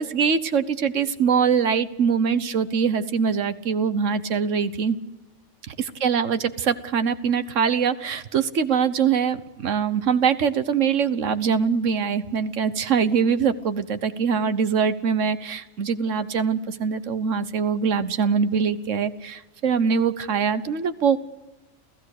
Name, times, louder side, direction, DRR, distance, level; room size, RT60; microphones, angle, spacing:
voice 1, 0.0-5.0 5.7-21.2, right 6 dB, 75° right, 12 dB, 1.4 m, -23 dB
29.5 x 15.5 x 6.6 m, 1.0 s
omnidirectional pair, 1.3 m